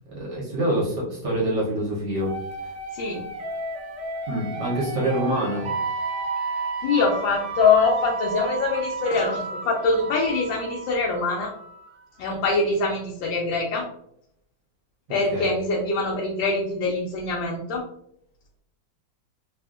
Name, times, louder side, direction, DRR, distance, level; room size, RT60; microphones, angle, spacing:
voice 1, 0.1-2.3 4.3-5.7 15.3-15.5, right 1 dB, 60° right, -5 dB, 1.3 m, -26 dB
sound 1, 2.2-11.9, right 3 dB, 90° right, 0.6 m, -32 dB
voice 2, 6.8-11.5 12.2-13.8 15.1-17.8, left 4 dB, 75° left, -1 dB, 1.2 m, -23 dB
3.4 x 2.4 x 2.4 m, 0.72 s
omnidirectional pair, 2.2 m